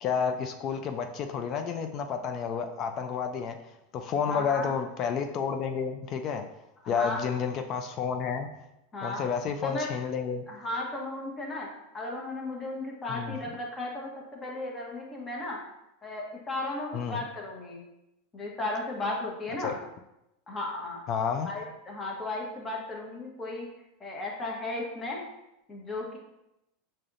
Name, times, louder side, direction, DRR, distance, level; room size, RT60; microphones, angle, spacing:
voice 1, 0.0-3.6 3.9-6.5 6.9-8.5 9.0-10.4 13.1-13.3 16.9-17.2 19.6-19.7 21.1-21.5, left 6 dB, 45° left, 6 dB, 0.3 m, -30 dB
voice 2, 4.3-4.7 6.8-7.2 8.9-9.2 9.6-9.9 10.5-11.7 11.9-15.6 16.0-17.8 18.3-19.7 20.5-21.0 21.4-23.7 24.0-25.2 25.7-26.2, left 2 dB, 20° left, -2 dB, 1.0 m, -35 dB
4.8 x 2.8 x 2.5 m, 0.88 s
supercardioid pair, 115°, 0 cm